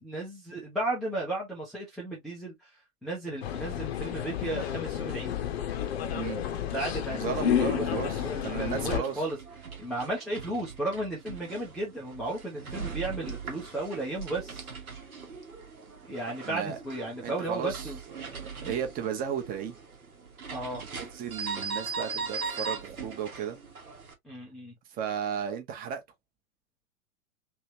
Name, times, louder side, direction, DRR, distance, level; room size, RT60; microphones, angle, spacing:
voice 1, 0.0-2.7 3.0-5.3 6.7-9.4 9.8-14.7 16.1-18.0 18.6-18.8 20.5-20.8 24.2-24.7, right 2 dB, ahead, 0.4 m, -34 dB
sound 1, 3.4-9.0, left 9 dB, 45° left, 0.7 m, -31 dB
voice 2, 7.1-9.2 16.4-16.8 17.2-17.9 18.2-19.8 21.0-23.6 25.0-26.0, right 8 dB, 20° right, 0.8 m, -34 dB
sound 2, 8.8-24.1, right 5 dB, 80° right, 1.2 m, -40 dB
3.3 x 2.9 x 2.7 m
figure-of-eight pair, 105°, 42 cm